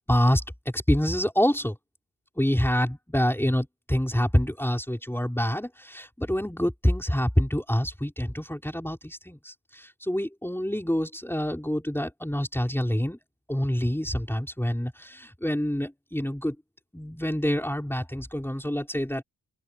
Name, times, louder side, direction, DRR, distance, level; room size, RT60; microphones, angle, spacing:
voice 1, 0.1-0.4 0.7-1.7 2.4-13.2 13.5-16.5 16.9-19.2, equal, 5° left, 5.0 m, -26 dB
wide cardioid pair, 115°, 45 cm